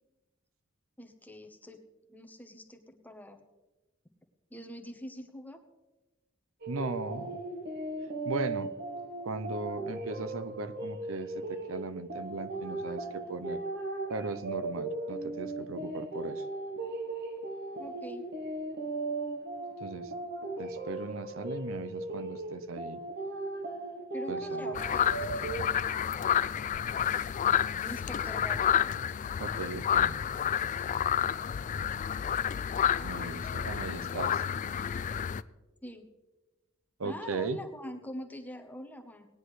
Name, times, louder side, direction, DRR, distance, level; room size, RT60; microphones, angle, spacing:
voice 1, 1.0-1.8 2.1-3.5 4.5-5.6 17.8-18.3 24.1-25.5 27.8-28.9 35.8-36.1 37.0-39.3, left 1 dB, 10° left, 5 dB, 1.0 m, -44 dB
sound 1, 6.6-25.6, right 2 dB, 55° right, 1.0 m, -37 dB
voice 2, 6.7-7.4 8.2-8.7 9.2-13.6 14.1-16.5 19.8-20.1 20.6-23.0 24.3-24.7 29.4-30.1 33.0-34.4 37.0-37.6, right 3 dB, 85° right, 12 dB, 0.7 m, -37 dB
sound 2, 24.8-35.4, left 9 dB, 40° left, 0.3 m, -30 dB
18.5 x 10.0 x 3.2 m, 1.1 s
head